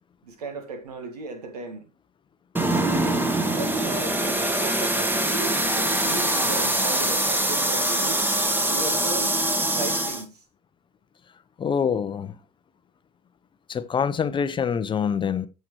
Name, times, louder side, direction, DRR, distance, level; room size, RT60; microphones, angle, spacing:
voice 1, 0.2-1.9 3.5-8.2 8.7-9.4 9.7-10.4, right 3 dB, 70° right, 1.9 m, -36 dB
sound 1, 2.6-10.2, right 1 dB, 10° right, 1.3 m, -23 dB
voice 2, 11.6-12.3 13.7-15.5, left 7 dB, 25° left, 0.7 m, -25 dB
14.5 x 5.9 x 3.0 m
figure-of-eight pair, 70°, 21 cm